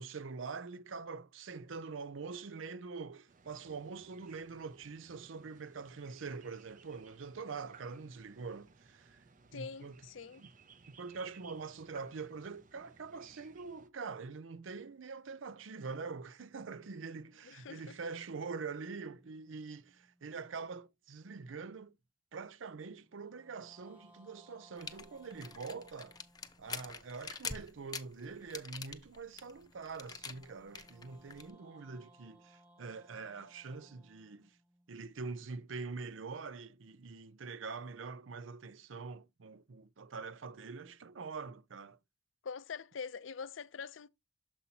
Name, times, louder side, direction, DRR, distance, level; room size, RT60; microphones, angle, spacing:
voice 1, 0.0-9.2 9.5-10.0 10.4-10.5 10.9-22.0 22.3-26.2 26.6-34.5 34.9-42.0, right 4 dB, 80° right, 0.6 m, -44 dB
sound 1, 3.3-13.9, right 5 dB, 45° right, 0.7 m, -61 dB
voice 2, 9.5-10.4 17.4-18.0 42.4-44.1, left 5 dB, 75° left, 0.5 m, -44 dB
sound 2, 18.4-20.8 23.0-27.2 29.3-35.5, right 1 dB, 5° right, 1.6 m, -65 dB
sound 3, 24.8-31.5, left 5 dB, 20° left, 0.8 m, -45 dB
7.1 x 5.5 x 2.8 m
head